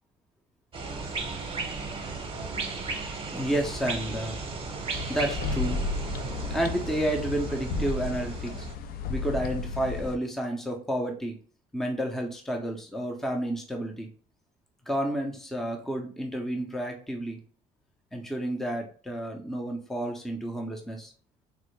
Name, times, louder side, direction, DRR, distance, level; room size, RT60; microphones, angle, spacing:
sound 1, 0.7-8.7, right 4 dB, 30° right, 0.8 m, -35 dB
voice 1, 3.3-4.4 5.1-5.8 6.5-8.7 9.1-11.4 11.7-14.1 14.9-17.4 18.1-21.1, right 1 dB, ahead, 3 dB, 0.5 m, -31 dB
sound 2, 4.9-10.2, left 3 dB, 60° left, 0.4 m, -33 dB
3.5 x 2.0 x 3.0 m, 0.42 s
cardioid pair, 110°, 17 cm